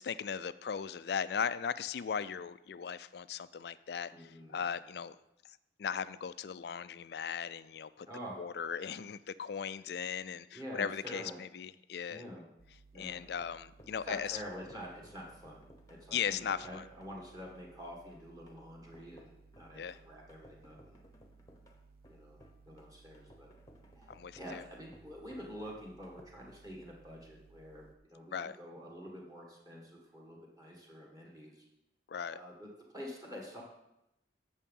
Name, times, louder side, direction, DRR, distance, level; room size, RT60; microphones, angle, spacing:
voice 1, 0.0-5.2 5.8-8.1 8.4-12.2 12.9-14.4 16.1-16.8 19.8-20.0 24.1-24.6 28.3-28.6 32.1-32.4, left 7 dB, 60° left, 15 dB, 0.3 m, -38 dB
voice 2, 4.1-4.6 8.1-8.4 10.5-11.4 12.1-12.4 12.9-13.2 14.0-21.0 22.1-22.4 22.7-23.5 23.9-31.6 32.3-33.6, equal, 20° right, -1 dB, 1.7 m, -47 dB
sound 1, 12.6-27.9, right 4 dB, 55° right, 0.8 m, -61 dB
sound 2, 13.2-26.2, left 1 dB, 20° left, 0.9 m, -62 dB
8.4 x 7.3 x 5.4 m, 0.88 s
head